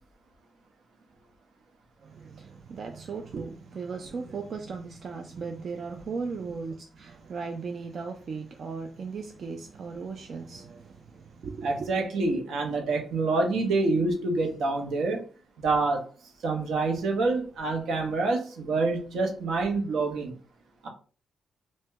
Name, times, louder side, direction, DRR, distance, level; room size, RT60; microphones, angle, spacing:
voice 1, 2.0-11.9, right 5 dB, 55° right, 0.4 m, -37 dB
voice 2, 11.6-15.2 15.6-16.0 16.4-20.3 20.8-20.9, right 3 dB, 85° right, 0.7 m, -27 dB
2.7 x 2.1 x 3.4 m
cardioid pair, 105°, 0 cm